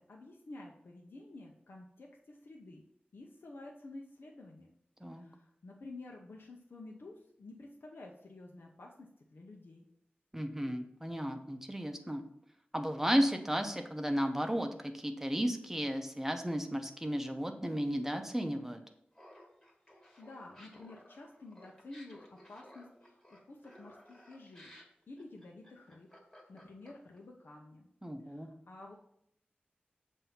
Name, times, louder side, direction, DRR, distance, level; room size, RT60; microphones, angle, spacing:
voice 1, 0.1-2.8 3.1-4.7 5.1-8.9 9.2-9.9 19.9-24.7 25.1-26.1 26.5-27.9 28.2-28.9, left 2 dB, 85° left, -1 dB, 0.7 m, -51 dB
voice 2, 10.3-12.2 12.7-18.8 28.0-28.5, equal, 10° right, 5 dB, 0.7 m, -34 dB
Laughter, 19.1-27.2, equal, 20° left, 1.5 m, -57 dB
7.4 x 2.7 x 5.7 m, 0.72 s
wide cardioid pair, 90°, 4 cm